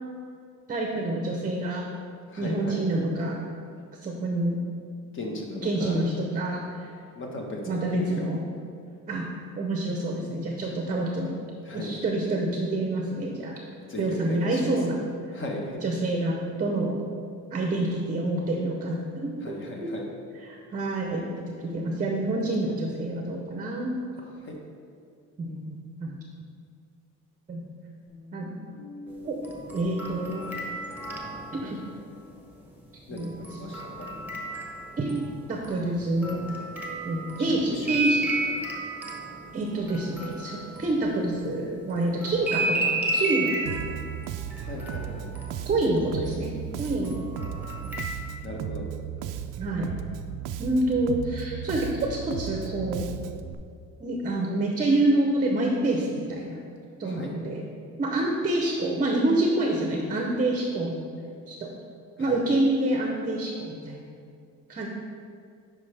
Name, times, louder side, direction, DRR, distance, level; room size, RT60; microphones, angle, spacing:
voice 1, 0.7-1.8 2.4-3.4 4.0-4.6 5.6-6.9 7.7-8.4 9.1-9.3 9.6-11.4 11.7-13.5 14.0-15.0 15.8-17.0 17.5-19.6 19.8-19.9 20.5-21.2 21.6-23.9 25.4-25.7 26.0-26.2 27.5-27.6 28.3-28.5 29.2-29.4 29.7-30.4 31.5-31.8 33.1-33.4 35.0-35.2 35.5-36.4 37.0-38.3 39.5-43.6 45.7-47.2 49.6-49.9 50.6-53.0 54.0-56.6 57.0-57.6 58.0-61.0 61.5-61.7 62.2-64.0 64.7-64.9, right 2 dB, 25° right, 1 dB, 0.7 m, -27 dB
voice 2, 2.3-2.8 5.1-6.1 7.1-8.1 11.6-11.9 13.9-14.9 15.3-15.8 19.4-20.0 24.3-24.5 33.1-34.1 37.4-38.1 44.6-45.3 48.4-48.9 57.0-57.3 62.2-62.6, left 1 dB, 40° left, 0 dB, 1.4 m, -36 dB
Guitar, 28.1-33.1, left 3 dB, 20° left, 1.6 m, -46 dB
baby toy, 29.4-31.9 33.2-35.3 35.6-41.5 42.2-46.4 46.8-48.0, right 2 dB, 5° right, 1.0 m, -33 dB
Bass guitar, 43.7-53.5, right 9 dB, 80° right, 0.5 m, -35 dB
9.4 x 5.0 x 3.4 m, 2.3 s
cardioid pair, 130°, 31 cm